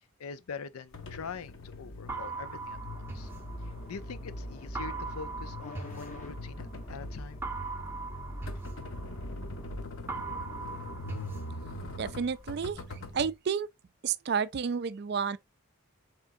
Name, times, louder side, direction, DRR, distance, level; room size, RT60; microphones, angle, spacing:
voice 1, 0.2-3.3 3.6-7.4, left 5 dB, 85° left, 0.5 m, -44 dB
sound 1, 0.9-13.3, left 2 dB, 65° left, 0.8 m, -44 dB
sound 2, 2.1-4.2 4.7-6.8 7.4-9.7 10.1-12.2, right 4 dB, 10° right, 0.8 m, -40 dB
sound 3, 2.7-9.8, equal, 35° left, 0.7 m, -42 dB
voice 2, 12.0-13.7 14.0-15.4, right 6 dB, 50° right, 0.3 m, -31 dB
4.3 x 3.6 x 2.6 m
head